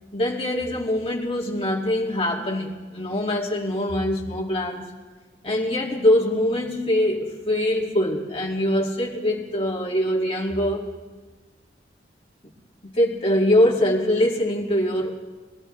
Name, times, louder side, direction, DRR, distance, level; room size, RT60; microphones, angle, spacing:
voice 1, 0.1-4.9 5.4-10.8 12.8-15.1, left 1 dB, 30° left, -2 dB, 2.2 m, -23 dB
23.5 x 15.0 x 3.3 m, 1.3 s
head